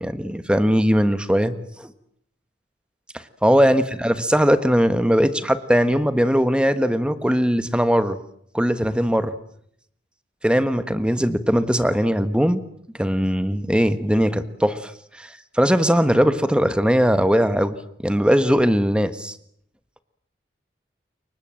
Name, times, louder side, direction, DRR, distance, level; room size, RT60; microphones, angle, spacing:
voice 1, 0.0-1.9 3.4-8.2 8.5-9.3 10.4-12.6 13.0-14.9 15.2-15.3 15.5-17.8 18.0-19.4, equal, 5° right, 12 dB, 1.3 m, -19 dB
29.0 x 23.5 x 7.7 m, 0.69 s
head